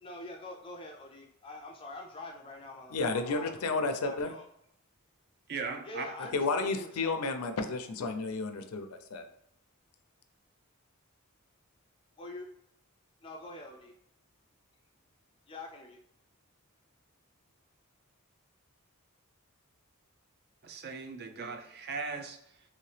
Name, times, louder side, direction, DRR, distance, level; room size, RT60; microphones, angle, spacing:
voice 1, 0.0-3.5 4.0-4.4 5.9-7.2 12.2-12.5 13.2-13.9 15.5-16.0, left 2 dB, 25° left, 1 dB, 0.3 m, -45 dB
voice 2, 2.9-4.3 6.3-9.2, left 3 dB, 85° left, 7 dB, 0.5 m, -32 dB
voice 3, 5.5-6.1 20.6-22.6, right 4 dB, 50° right, 5 dB, 0.5 m, -38 dB
3.1 x 2.8 x 3.2 m, 0.74 s
head